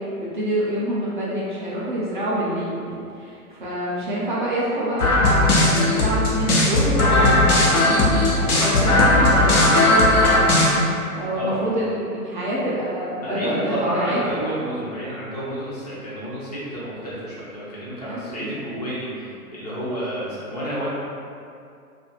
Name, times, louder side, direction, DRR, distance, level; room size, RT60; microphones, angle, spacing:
voice 1, 0.0-14.7 18.0-18.6, right 1 dB, 35° right, -7 dB, 0.4 m, -27 dB
sound 1, 5.0-10.7, left 2 dB, 75° left, 0.7 m, -17 dB
voice 2, 11.4-11.7 13.2-20.9, equal, 30° left, -9 dB, 0.4 m, -30 dB
2.4 x 2.4 x 2.8 m, 2.4 s
figure-of-eight pair, 125°, 45 cm